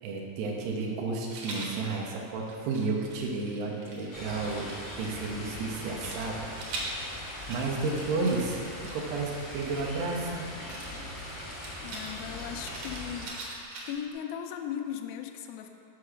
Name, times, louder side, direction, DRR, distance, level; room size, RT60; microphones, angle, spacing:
voice 1, 0.0-4.7 5.0-6.4 7.5-10.4, right 3 dB, 85° right, -2 dB, 2.9 m, -32 dB
Rattle, 1.3-1.8 2.4-5.1 6.0-10.0 10.7-14.1, right 2 dB, 65° right, 1.9 m, -42 dB
sound 1, 4.1-13.3, left 1 dB, 60° left, 0.8 m, -41 dB
voice 2, 11.8-13.4 13.9-15.7, left 9 dB, 85° left, 4 dB, 2.1 m, -37 dB
6.8 x 4.8 x 6.4 m, 2.6 s
omnidirectional pair, 4.6 m